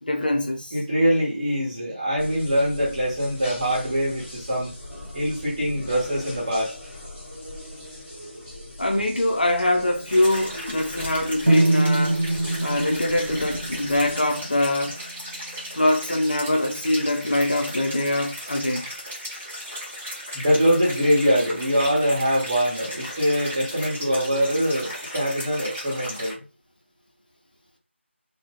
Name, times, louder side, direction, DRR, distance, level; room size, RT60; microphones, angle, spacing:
voice 1, 0.0-0.7 8.8-12.2 12.6-15.0 15.7-18.9, left 1 dB, 45° left, 0.5 m, -23 dB
voice 2, 0.7-4.7 5.1-6.7 20.3-26.4, equal, 25° right, 1.0 m, -23 dB
sound 1, 2.2-14.2, left 1 dB, 15° left, 0.9 m, -40 dB
sound 2, 10.1-26.3, equal, 5° right, 0.3 m, -36 dB
sound 3, 11.5-15.4, right 2 dB, 65° right, 0.6 m, -24 dB
2.7 x 2.1 x 3.5 m
figure-of-eight pair, 165°, 7 cm